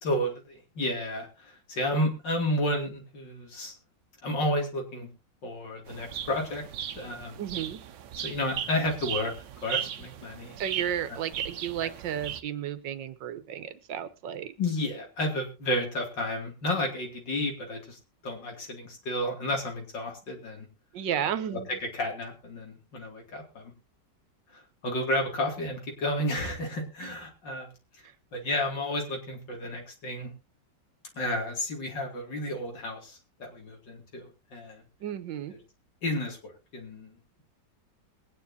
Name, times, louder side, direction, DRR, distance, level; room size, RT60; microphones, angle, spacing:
voice 1, 0.0-3.7 4.2-5.1 5.4-6.6 7.0-7.4 8.2-9.3 9.6-10.5 11.1-11.2 11.8-11.9 14.6-20.7 21.5-21.6 21.9-23.7 24.5-27.7 28.3-30.3 31.1-34.8 36.0-37.1, left 1 dB, 80° left, 2 dB, 3.3 m, -32 dB
sound 1, 5.9-12.4, right 9 dB, 75° right, 1.4 m, -37 dB
voice 2, 7.4-7.8 10.6-14.5 20.9-21.7 27.0-27.1 28.0-28.1 35.0-35.5, right 9 dB, 90° right, 12 dB, 1.6 m, -33 dB
21.5 x 9.6 x 2.8 m, 0.27 s
omnidirectional pair, 1.9 m